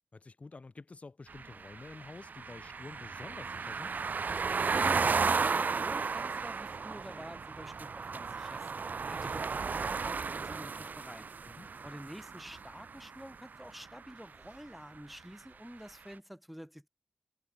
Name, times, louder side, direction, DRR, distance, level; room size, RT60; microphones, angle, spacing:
voice 1, 0.1-4.0 9.0-9.3 11.4-11.7, left 3 dB, 50° left, 5.0 m, -49 dB
sound 1, 1.3-13.3, right 5 dB, 85° right, 1.6 m, -34 dB
voice 2, 4.7-11.3 11.8-16.9, equal, ahead, 2.9 m, -48 dB
wide cardioid pair, 90°, 3 cm